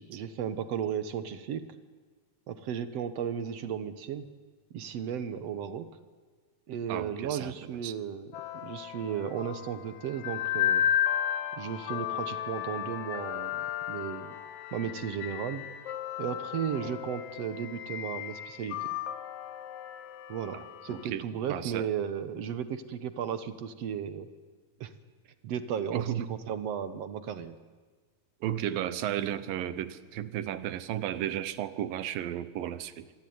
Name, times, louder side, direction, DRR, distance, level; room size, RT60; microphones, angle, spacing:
voice 1, 0.0-1.6 2.5-4.3 4.7-5.9 6.7-10.9 11.6-14.4 14.7-15.6 16.2-19.0 20.3-24.3 24.8-24.9 25.4-27.6, right 8 dB, 60° right, 12 dB, 1.8 m, -35 dB
voice 2, 6.9-7.5 7.8-7.9 16.8-16.9 20.5-21.9 25.9-26.3 28.4-33.1, right 11 dB, 80° right, 14 dB, 2.8 m, -34 dB
sound 1, 8.3-21.1, left 10 dB, 70° left, 2.0 m, -34 dB
26.5 x 21.0 x 9.5 m, 1.4 s
omnidirectional pair, 4.0 m